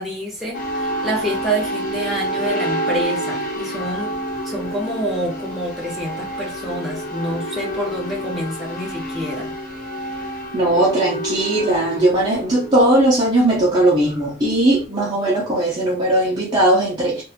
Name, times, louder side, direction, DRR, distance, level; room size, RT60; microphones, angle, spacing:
voice 1, 0.0-4.1 4.4-9.5, equal, ahead, 0.9 m, -27 dB
sound 1, 0.5-14.8, right 1 dB, 40° left, 1.2 m, -28 dB
voice 2, 10.5-17.2, right 1 dB, 20° right, 0.6 m, -18 dB
2.6 x 2.4 x 2.7 m
head